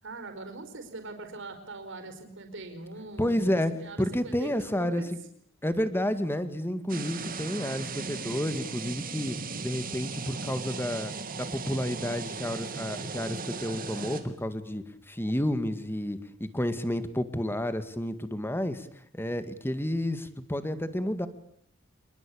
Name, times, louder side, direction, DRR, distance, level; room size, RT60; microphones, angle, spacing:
voice 1, 0.0-5.0 9.3-9.8, right 2 dB, 65° right, 7 dB, 5.0 m, -42 dB
voice 2, 3.2-3.7 4.0-5.0 5.6-9.3 9.6-18.9 19.1-21.3, left 1 dB, 10° left, 11 dB, 2.0 m, -30 dB
sound 1, 6.9-14.2, right 4 dB, 45° right, 2.8 m, -37 dB
26.5 x 21.5 x 8.7 m, 0.67 s
head